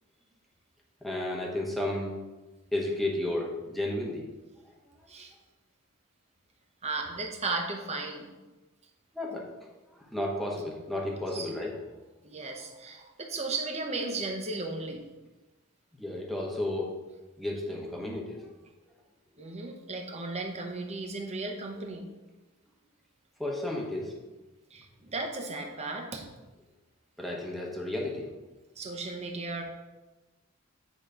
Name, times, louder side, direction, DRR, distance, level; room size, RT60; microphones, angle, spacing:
voice 1, 1.0-2.2 2.7-4.2 9.1-9.5 10.1-11.8 15.9-16.9 17.4-18.5 23.4-24.1 27.2-28.4, left 1 dB, ahead, -2 dB, 1.0 m, -32 dB
voice 2, 6.8-8.3 11.3-11.5 12.2-15.0 19.4-22.1 24.7-24.9 25.1-26.3 28.8-29.6, right 3 dB, 30° right, 2 dB, 0.9 m, -35 dB
9.1 x 3.1 x 5.0 m, 1.1 s
head